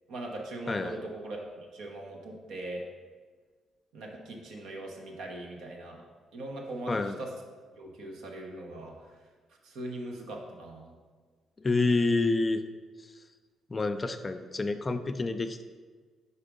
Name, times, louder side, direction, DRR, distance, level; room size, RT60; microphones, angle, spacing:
voice 1, 0.1-2.8 3.9-6.0 6.3-7.3 7.8-8.9 9.6-10.9 14.2-14.3, right 1 dB, 80° right, 0 dB, 1.1 m, -40 dB
voice 2, 0.7-1.0 6.9-7.2 11.6-12.6 13.7-15.6, left 3 dB, 30° left, 9 dB, 0.4 m, -28 dB
4.9 x 4.2 x 5.2 m, 1.5 s
cardioid pair, 90°, 0 cm